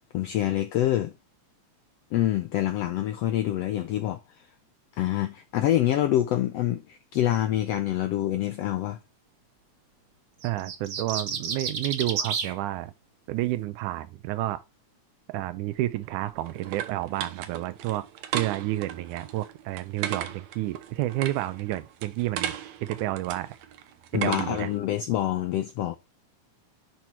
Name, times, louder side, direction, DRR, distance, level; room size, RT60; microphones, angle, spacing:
voice 1, 0.1-1.1 2.1-4.4 4.9-9.0 24.1-26.0, left 13 dB, 75° left, 1.5 m, -26 dB
sound 1, 10.4-12.5, right 6 dB, 55° right, 1.2 m, -31 dB
voice 2, 10.4-12.9 13.3-14.6 15.3-18.1 18.3-22.6 22.8-23.5 24.1-24.7, right 15 dB, 85° right, 2.1 m, -30 dB
sound 2, 15.8-24.8, right 10 dB, 70° right, 2.1 m, -37 dB
10.5 x 4.5 x 3.4 m
omnidirectional pair, 3.5 m